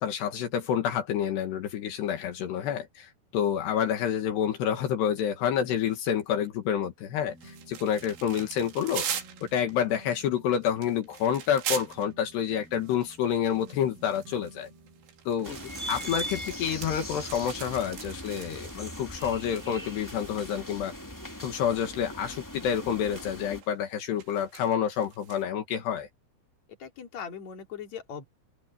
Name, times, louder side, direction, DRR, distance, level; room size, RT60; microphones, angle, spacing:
voice 1, 0.0-9.0 9.5-14.7 15.3-15.5 15.9-20.9 21.4-26.1, left 9 dB, 75° left, 4.0 m, -28 dB
sound 1, 7.1-16.4, right 2 dB, 65° right, 6.0 m, -54 dB
sound 2, 7.4-12.1 12.7-19.8 20.0-20.8 21.6-21.7 22.7-23.0 23.6-25.4, right 9 dB, 90° right, 5.0 m, -41 dB
voice 2, 15.4-15.9 26.8-28.3, left 7 dB, 45° left, 4.1 m, -41 dB
sound 3, 15.4-23.6, equal, 5° left, 1.5 m, -40 dB
open air
omnidirectional pair, 4.8 m